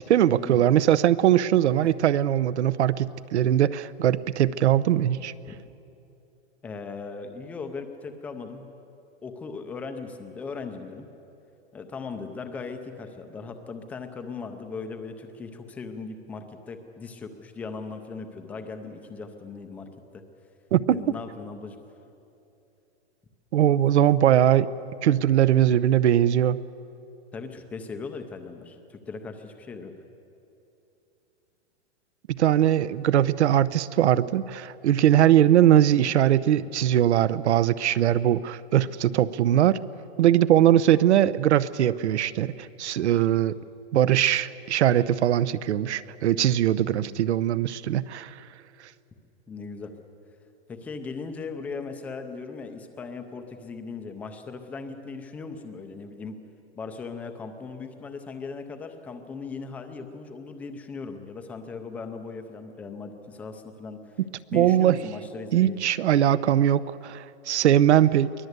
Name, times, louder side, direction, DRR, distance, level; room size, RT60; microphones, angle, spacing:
voice 1, 0.1-5.3 20.7-21.0 23.5-24.7 25.0-26.6 32.3-39.8 40.2-43.6 43.9-48.3 64.2-65.0 65.5-68.3, right 11 dB, 85° right, 17 dB, 0.9 m, -21 dB
voice 2, 6.6-8.7 9.2-11.1 11.7-20.2 20.9-21.8 27.3-29.9 40.6-40.7 46.9-47.1 49.5-49.9 50.7-56.4 56.8-64.0 64.5-65.8, left 4 dB, 5° left, 6 dB, 0.5 m, -38 dB
23.5 x 18.5 x 8.1 m, 2.8 s
supercardioid pair, 170°, 33 cm